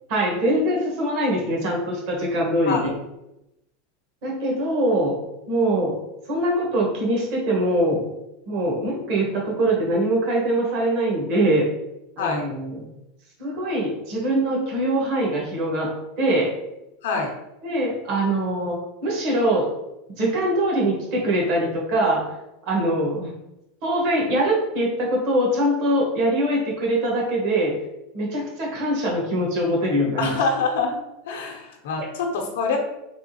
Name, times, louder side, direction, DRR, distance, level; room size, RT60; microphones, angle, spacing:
voice 1, 0.1-2.9 4.2-5.1 5.5-6.0 6.3-8.0 8.5-11.7 12.2-12.9 13.4-15.9 16.2-16.5 17.6-19.7 20.2-22.2 22.6-23.3 23.8-27.7 28.1-30.3, right 1 dB, 45° right, -2 dB, 1.2 m, -23 dB
voice 2, 12.2-12.5 17.0-17.3 30.2-31.0 31.3-32.8, left 4 dB, 85° left, 2 dB, 0.7 m, -25 dB
3.4 x 3.0 x 2.9 m, 0.90 s
supercardioid pair, 170°, 0 cm